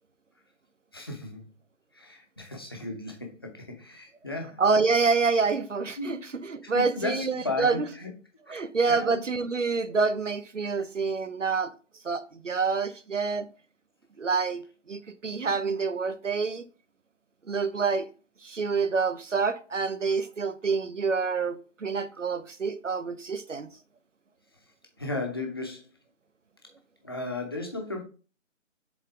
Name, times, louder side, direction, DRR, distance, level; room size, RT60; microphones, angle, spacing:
voice 1, 0.9-1.4 1.9-4.6 6.0-6.1 6.6-8.1 8.5-9.2 25.0-25.8 27.0-28.0, left 2 dB, 20° left, 0.7 m, -35 dB
voice 2, 4.6-7.9 8.5-11.7 12.0-13.5 14.2-16.6 17.5-18.1 18.4-23.7, right 4 dB, 70° right, 0.9 m, -27 dB
7.4 x 3.9 x 3.5 m
figure-of-eight pair, 150°, 39 cm